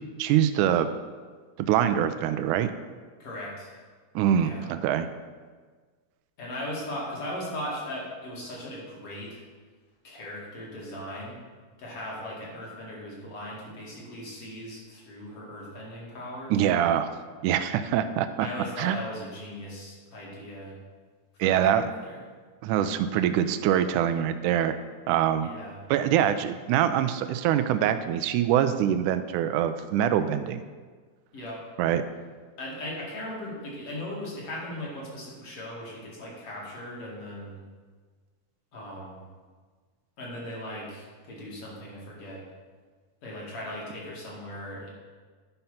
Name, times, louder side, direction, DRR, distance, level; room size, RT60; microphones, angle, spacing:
voice 1, 0.2-0.9 1.6-2.8 4.2-5.1 16.5-17.1 17.4-18.5 18.8-19.0 21.4-21.9 22.6-24.8 25.1-25.5 25.9-30.6 31.8-32.0, right 10 dB, 85° right, 10 dB, 2.1 m, -24 dB
voice 2, 3.2-3.8 4.4-4.7 6.4-9.4 10.0-11.4 11.8-16.5 18.4-20.8 21.4-22.2 25.4-25.8 31.3-31.6 32.6-37.6 38.7-39.2 40.2-42.4 43.2-44.9, left 1 dB, 50° left, -4 dB, 3.1 m, -38 dB
10.5 x 5.5 x 5.7 m, 1.5 s
omnidirectional pair, 3.5 m